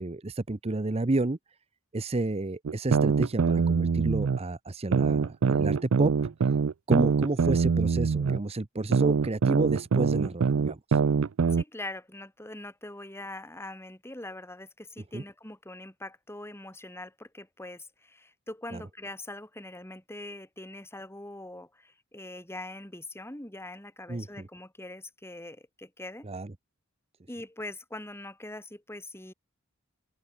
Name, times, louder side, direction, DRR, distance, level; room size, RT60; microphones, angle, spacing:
voice 1, 0.0-1.4 1.9-6.3 6.9-11.0 15.1-15.2 18.7-18.8 24.1-24.5 26.2-26.5, right 2 dB, 30° right, 0.7 m, -30 dB
sound 1, 2.7-4.4 4.9-8.4 8.9-11.6, right 5 dB, 80° right, 0.5 m, -24 dB
voice 2, 11.5-26.3 27.3-29.3, left 1 dB, 10° left, 3.0 m, -42 dB
open air
head